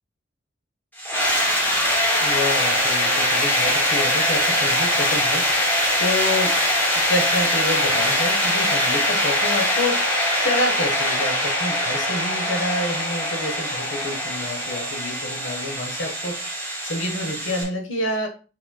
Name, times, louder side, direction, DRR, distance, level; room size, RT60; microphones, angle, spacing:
sound 1, 1.0-17.6, left 1 dB, 10° left, 1.9 m, -22 dB
voice 1, 2.2-6.6 6.9-16.3 16.8-18.3, left 1 dB, 75° left, 3 dB, 1.1 m, -28 dB
4.9 x 4.3 x 2.2 m, 0.35 s
head